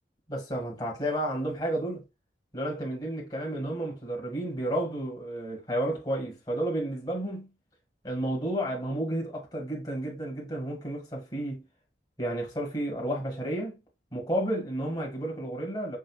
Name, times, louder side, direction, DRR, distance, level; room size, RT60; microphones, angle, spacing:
voice 1, 0.3-2.0 2.5-7.5 8.0-11.6 12.2-13.8 14.1-16.0, right 1 dB, 25° left, 1.8 m, -31 dB
6.4 x 2.6 x 2.3 m
head